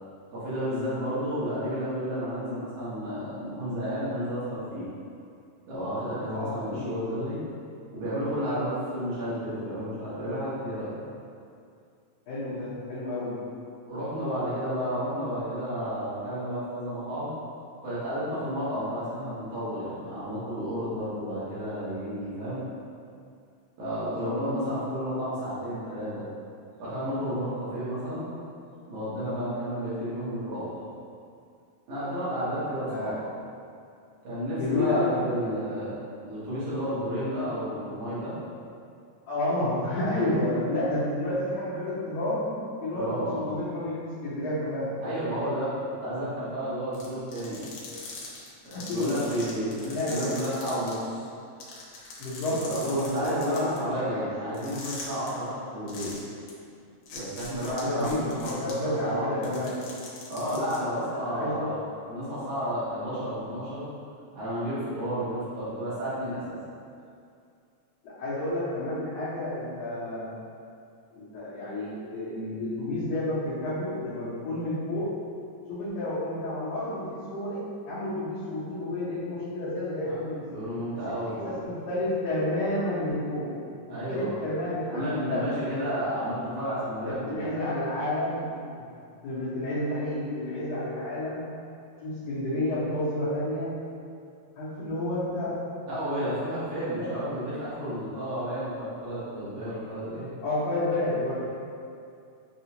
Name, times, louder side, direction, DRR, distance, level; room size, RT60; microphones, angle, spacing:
voice 1, 0.3-4.8 5.7-7.4 7.9-10.9 13.9-17.3 17.8-22.6 23.8-26.2 26.8-28.3 28.9-30.9 31.9-33.2 34.2-36.0 36.2-38.3 42.9-43.5 45.0-45.7 46.0-47.7 48.6-51.2 52.6-56.1 57.1-58.7 59.0-59.5 60.3-61.8 62.1-63.9 64.3-66.6 80.1-80.2 80.5-81.5 83.9-84.4 84.9-87.5 95.9-100.2, equal, 80° right, -11 dB, 2.8 m, -31 dB
voice 2, 6.3-7.1 12.3-13.4 24.1-24.4 32.9-33.2 34.6-35.6 39.3-45.0 48.7-49.3 49.9-50.4 52.2-54.2 57.6-59.8 61.1-61.7 68.0-70.3 71.1-75.2 75.7-80.5 80.9-81.0 81.3-83.5 83.9-85.5 87.3-88.9 89.2-91.5 92.0-93.8 94.6-95.6 96.8-97.1 100.4-101.4, left 1 dB, 70° left, -14 dB, 1.9 m, -30 dB
sound 1, 46.9-50.9 51.3-51.4 51.6-53.8 54.5-55.3 55.9-56.2 56.5-56.6 57.1-58.7 59.3-60.8, left 4 dB, 90° left, 2.2 m, -41 dB
6.4 x 2.3 x 2.8 m, 2.4 s
omnidirectional pair, 3.4 m